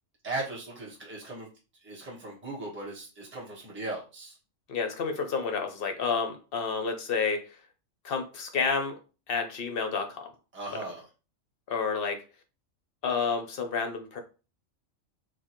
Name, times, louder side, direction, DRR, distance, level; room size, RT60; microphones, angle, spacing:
voice 1, 0.2-1.5 1.8-4.4 10.5-11.0, right 2 dB, 10° right, -4 dB, 1.1 m, -38 dB
voice 2, 4.7-7.6 8.0-9.0 9.3-10.3 11.7-12.2 13.0-14.2, left 5 dB, 60° left, 6 dB, 0.7 m, -30 dB
4.4 x 2.2 x 2.9 m, 0.33 s
omnidirectional pair, 1.4 m